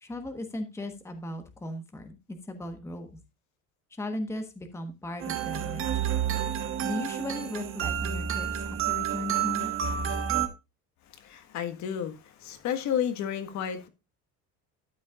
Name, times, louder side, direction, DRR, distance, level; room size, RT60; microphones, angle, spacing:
voice 1, 0.0-3.1 3.9-6.2 6.8-9.7, left 1 dB, 10° left, 1.3 m, -37 dB
sound 1, 5.2-10.5, right 9 dB, 35° right, 1.3 m, -29 dB
voice 2, 11.2-13.9, left 9 dB, 55° left, 1.6 m, -31 dB
12.5 x 8.5 x 2.5 m
cardioid pair, 160°, 35 cm